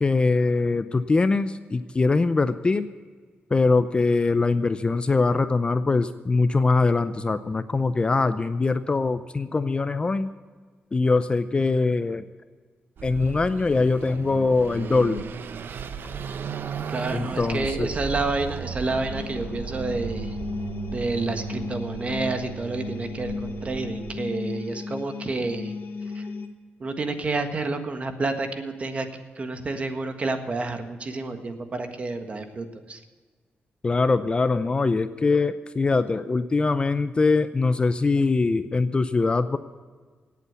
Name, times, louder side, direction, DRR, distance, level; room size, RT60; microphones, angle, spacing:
voice 1, 0.0-2.9 3.5-10.3 10.9-12.2 13.0-15.2 17.1-17.9 33.8-39.6, left 3 dB, 25° left, 12 dB, 0.6 m, -22 dB
Car passing by / Accelerating revving vroom, 13.0-24.2, right 7 dB, 60° right, 0.8 m, -35 dB
voice 2, 16.9-20.4 20.9-25.7 26.1-26.3 26.8-29.1 29.3-33.0, right 3 dB, 35° right, 7 dB, 1.6 m, -29 dB
sound 1, 18.6-26.5, left 4 dB, 65° left, 1.5 m, -36 dB
17.5 x 8.5 x 8.1 m, 1.5 s
wide cardioid pair, 140°, 4 cm